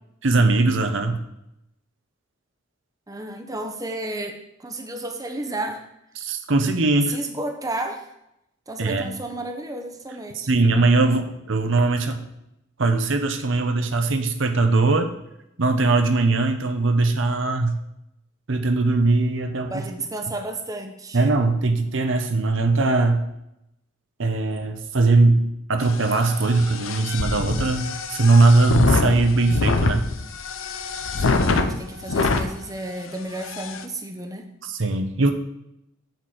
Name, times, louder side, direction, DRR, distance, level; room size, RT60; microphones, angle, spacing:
voice 1, 0.2-1.2 6.2-7.2 8.8-9.1 10.4-12.2 12.8-15.1 15.6-17.8 18.5-19.9 21.1-23.2 24.2-30.1 34.6-35.3, right 3 dB, 70° right, 7 dB, 0.8 m, -20 dB
voice 2, 3.1-5.8 7.1-8.1 8.7-10.5 19.7-21.2 31.2-34.5, right 2 dB, 20° right, 4 dB, 0.7 m, -32 dB
sound 1, 25.8-32.5 33.0-33.1 33.4-33.8, left 3 dB, 90° left, 0.7 m, -25 dB
8.0 x 4.3 x 6.4 m, 0.82 s
head